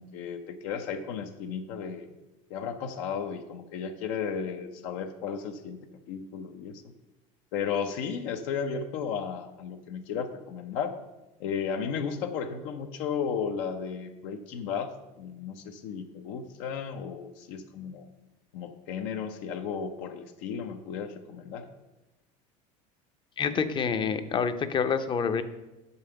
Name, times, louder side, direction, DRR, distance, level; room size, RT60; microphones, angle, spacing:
voice 1, 0.0-2.1 2.5-5.8 6.1-6.8 7.5-10.9 11.4-14.9 15.2-18.1 18.5-21.7, left 6 dB, 80° left, 5 dB, 0.7 m, -34 dB
voice 2, 23.4-25.4, left 6 dB, 30° left, 10 dB, 0.6 m, -27 dB
6.9 x 5.5 x 6.5 m, 1.0 s
supercardioid pair, 125°, 17 cm